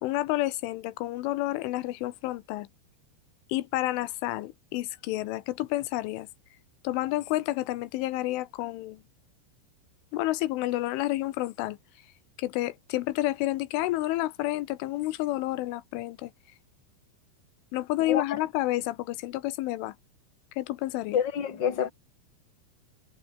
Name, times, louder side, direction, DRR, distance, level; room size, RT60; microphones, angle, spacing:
voice 1, 0.0-2.7 3.5-6.3 6.8-9.0 10.1-11.8 12.4-16.3 17.7-19.9 20.6-21.2, left 17 dB, 85° left, 3.4 m, -30 dB
voice 2, 18.0-18.4 21.1-21.9, left 8 dB, 35° left, 1.9 m, -28 dB
omnidirectional pair, 5.8 m